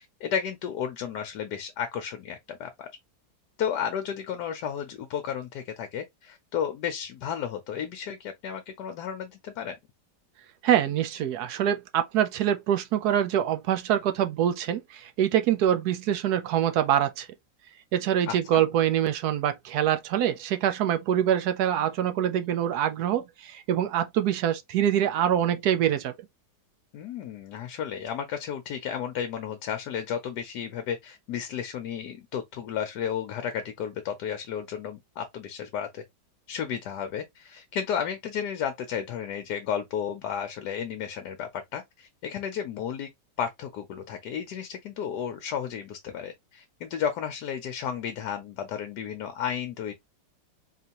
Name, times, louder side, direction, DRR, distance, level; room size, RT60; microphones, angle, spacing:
voice 1, 0.0-2.9 3.6-9.7 18.3-18.6 26.9-36.0 36.5-43.1 43.4-49.9, left 8 dB, 70° left, 1.2 m, -33 dB
voice 2, 10.6-17.3 17.9-26.1, right 10 dB, 70° right, 1.0 m, -25 dB
4.1 x 3.3 x 2.9 m
omnidirectional pair, 2.0 m